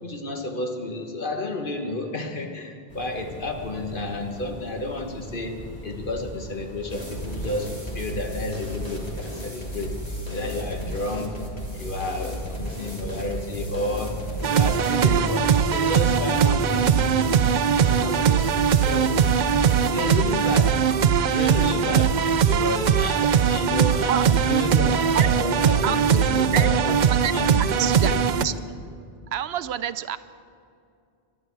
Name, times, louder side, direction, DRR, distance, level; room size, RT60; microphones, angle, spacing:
voice 1, 0.0-5.6 5.8-9.9 10.3-11.4 11.7-14.2 14.4-19.1 19.8-20.8 21.3-22.1 22.5-27.0 27.3-28.2, left 2 dB, 55° left, 3 dB, 1.6 m, -31 dB
sound 1, 2.9-15.5, equal, 90° left, 3.5 m, -43 dB
sound 2, 6.9-19.9, equal, 40° left, 2.4 m, -34 dB
sound 3, 14.4-28.5, right 7 dB, 55° right, 0.6 m, -20 dB
voice 2, 27.6-28.1 28.4-28.5 29.3-30.2, right 10 dB, 85° right, 14 dB, 0.8 m, -27 dB
23.5 x 11.5 x 4.6 m, 2.4 s
omnidirectional pair, 1.0 m